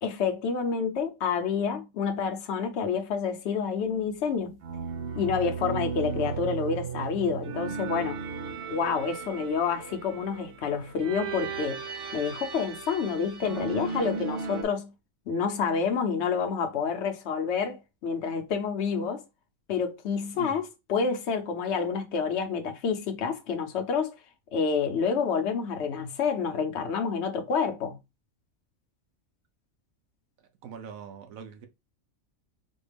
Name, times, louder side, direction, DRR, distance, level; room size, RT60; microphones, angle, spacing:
voice 1, 0.0-4.6 5.1-8.2 8.7-11.8 12.1-14.9 15.3-19.2 19.7-24.2 24.5-28.0, left 6 dB, 60° left, 1.0 m, -28 dB
sound 1, 4.6-14.6, right 5 dB, 55° right, 0.7 m, -35 dB
voice 2, 30.6-31.7, right 7 dB, 85° right, 1.1 m, -43 dB
4.2 x 2.2 x 3.3 m
omnidirectional pair, 1.4 m